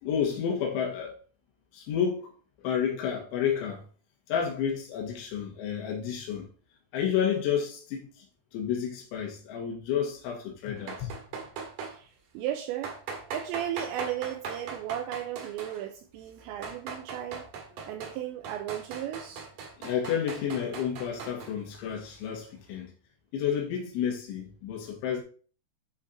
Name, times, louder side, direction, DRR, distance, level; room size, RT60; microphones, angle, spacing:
voice 1, 0.0-1.2 1.7-2.3 2.6-3.8 4.3-6.5 6.9-8.3 8.5-11.1 19.8-22.9 23.3-25.2, left 8 dB, 90° left, 3.8 m, -30 dB
sound 1, 10.8-12.0 12.8-15.9 16.4-18.2 18.4-21.5, right 5 dB, 60° right, 2.4 m, -39 dB
voice 2, 11.9-13.0 13.3-17.5 17.8-19.5, right 11 dB, 80° right, 2.7 m, -35 dB
9.6 x 3.8 x 4.1 m
omnidirectional pair, 5.4 m